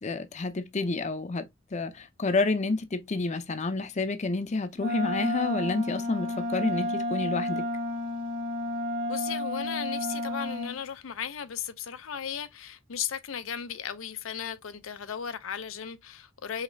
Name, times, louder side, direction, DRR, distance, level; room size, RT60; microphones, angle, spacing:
voice 1, 0.0-7.6, left 3 dB, 35° left, 0.5 m, -29 dB
Wind instrument woodwind instrument, 4.8-10.8, left 1 dB, 50° right, 1.4 m, -31 dB
voice 2, 9.1-16.6, left 8 dB, 90° left, 0.5 m, -36 dB
5.0 x 3.1 x 2.6 m
head